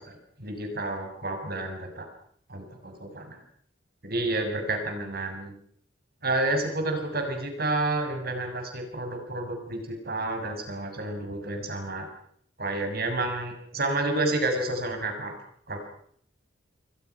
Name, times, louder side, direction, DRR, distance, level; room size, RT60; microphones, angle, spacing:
voice 1, 0.0-2.1 2.5-3.4 4.0-5.5 6.2-12.1 12.6-15.3 15.7-15.9, right 2 dB, 55° right, 5 dB, 6.5 m, -30 dB
28.5 x 23.5 x 5.9 m, 0.64 s
head